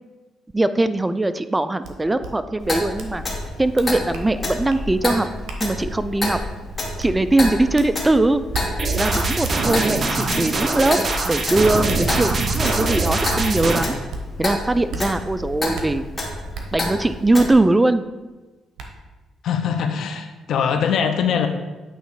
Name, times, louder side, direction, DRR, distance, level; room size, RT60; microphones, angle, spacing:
voice 1, 0.5-3.2 3.6-5.3 5.6-6.4 7.0-8.4 8.9-11.0 11.2-14.0 14.4-16.1 16.7-18.0, right 2 dB, 15° right, 12 dB, 0.3 m, -20 dB
sound 1, 1.8-1.9 2.2-2.3 3.0-3.1 3.4-4.3 4.7-4.8 5.5-5.6 6.2-6.3 7.0-7.1 7.7-7.9 8.5-8.7 9.4-9.6 10.3-10.4 10.8-12.7 13.2-13.4 14.1-14.2 14.9-15.0 15.7-15.9 16.5-16.6 18.1-18.2 18.8-18.9, right 4 dB, 80° right, 0.9 m, -34 dB
Clock, 2.6-17.5, left 2 dB, 30° left, 1.6 m, -29 dB
sound 2, 8.8-13.8, right 3 dB, 40° right, 0.9 m, -23 dB
voice 2, 19.4-21.5, left 7 dB, 70° left, 7 dB, 0.7 m, -22 dB
8.8 x 3.0 x 4.8 m, 1.2 s
cardioid pair, 90°, 0 cm